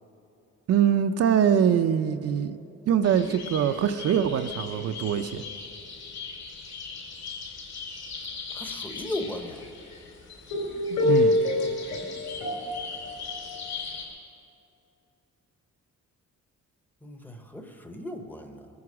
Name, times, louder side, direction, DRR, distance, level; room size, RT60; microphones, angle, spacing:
voice 1, 0.7-2.6 2.9-5.4 10.9-11.4, right 8 dB, 55° right, 8 dB, 0.5 m, -23 dB
sound 1, 3.0-14.0, left 2 dB, 65° left, 4.2 m, -31 dB
voice 2, 8.5-9.6 17.0-18.7, left 1 dB, 5° left, 5 dB, 0.8 m, -36 dB
21.0 x 9.5 x 6.1 m, 2.8 s
cardioid pair, 180°, 29 cm